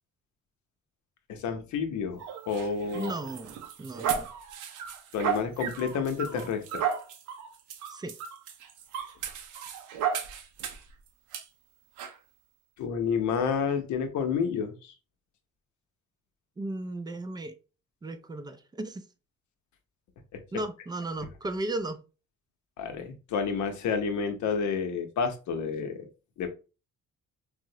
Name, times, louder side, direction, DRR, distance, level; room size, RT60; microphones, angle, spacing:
voice 1, 1.3-3.1 5.1-6.8 12.8-14.9 22.8-26.1 26.4-26.5, left 6 dB, 75° left, 0.7 m, -30 dB
sound 1, 2.2-10.9 11.3-11.4 12.0-12.2, right 8 dB, 85° right, 0.5 m, -34 dB
voice 2, 2.9-4.3 7.9-8.1 16.6-17.6 18.0-19.0 20.5-22.0, right 2 dB, 15° right, 0.3 m, -35 dB
3.6 x 2.0 x 2.7 m
cardioid pair, 90°, 30 cm